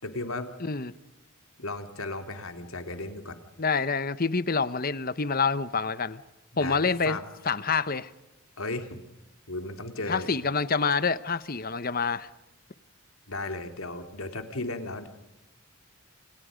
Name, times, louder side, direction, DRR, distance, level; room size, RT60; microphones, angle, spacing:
voice 1, 0.0-0.5 1.6-3.4 6.6-7.2 8.6-9.0 9.5-10.3 13.3-15.1, left 2 dB, 70° left, 3.2 m, -35 dB
voice 2, 0.6-0.9 3.6-6.2 6.6-7.2 7.4-8.1 10.1-12.3, left 4 dB, 40° left, 1.0 m, -27 dB
29.5 x 28.5 x 5.2 m
head